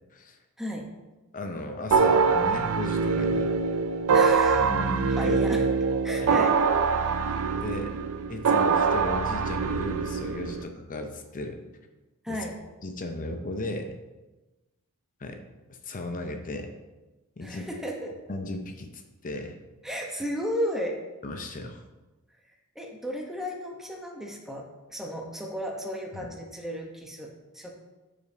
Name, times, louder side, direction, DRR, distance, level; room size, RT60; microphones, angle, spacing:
voice 1, 0.6-0.9 4.1-4.7 5.1-5.7 6.0-7.1 12.2-12.6 17.4-18.2 19.8-21.0 22.7-27.7, equal, ahead, 0 dB, 0.9 m, -34 dB
voice 2, 1.3-3.5 4.6-5.4 6.2-6.4 7.6-7.9 8.3-11.6 12.3-12.4 12.8-14.0 15.2-15.4 15.7-16.7 17.4-17.7 18.3-19.6 21.2-21.8 26.1-26.3, left 2 dB, 40° left, 5 dB, 0.6 m, -35 dB
sound 1, 1.9-10.6, right 5 dB, 65° right, 0.4 m, -24 dB
12.5 x 5.1 x 2.8 m, 1.1 s
head